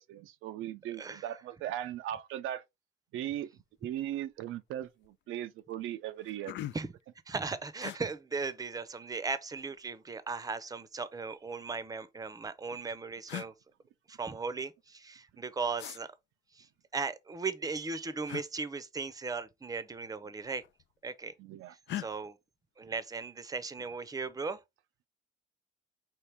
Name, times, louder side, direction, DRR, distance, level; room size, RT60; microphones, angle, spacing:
voice 1, 0.0-2.6 3.1-3.5 3.8-6.5 21.4-21.7, right 12 dB, 85° right, 0.4 m, -38 dB
voice 2, 1.0-1.3 6.7-6.9 7.3-13.5 14.1-16.1 16.5-16.7 16.9-20.6 21.0-21.3 21.7-22.4 22.8-24.6, right 4 dB, 20° right, 0.6 m, -37 dB
sound 1, 4.1-4.3 4.7-5.1 5.7-5.8 6.1-7.0 7.8-8.0 9.2-9.9 11.0-11.9 12.8-12.9 13.3-13.5 15.8-16.0 18.2-18.5 19.8-20.1 20.4-21.0 21.9-22.1, left 13 dB, 65° left, 0.4 m, -42 dB
4.5 x 3.1 x 3.4 m
cardioid pair, 90°, 20 cm